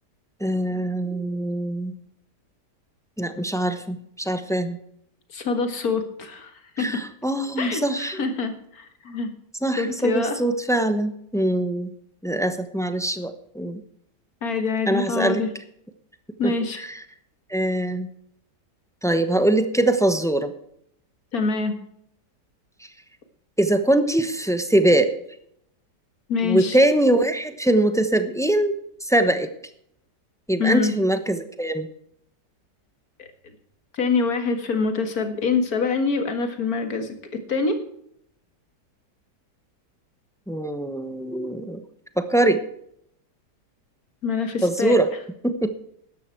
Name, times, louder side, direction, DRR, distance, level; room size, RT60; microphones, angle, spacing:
voice 1, 0.4-1.9 3.2-4.8 6.8-8.2 9.6-11.9 12.2-13.8 14.9-15.4 16.4-17.0 17.5-18.1 19.0-20.5 23.6-25.1 26.4-29.5 30.5-31.9 40.5-41.8 42.2-42.6 44.6-45.1 45.4-45.7, right 1 dB, 5° left, 9 dB, 0.6 m, -22 dB
voice 2, 5.3-7.0 7.6-9.3 9.8-10.4 14.4-15.5 16.4-16.8 21.3-21.8 26.3-26.8 30.6-31.0 33.2-33.3 33.9-37.8 44.2-45.0, left 4 dB, 55° left, 7 dB, 2.2 m, -25 dB
13.0 x 11.0 x 4.5 m, 0.70 s
omnidirectional pair, 1.8 m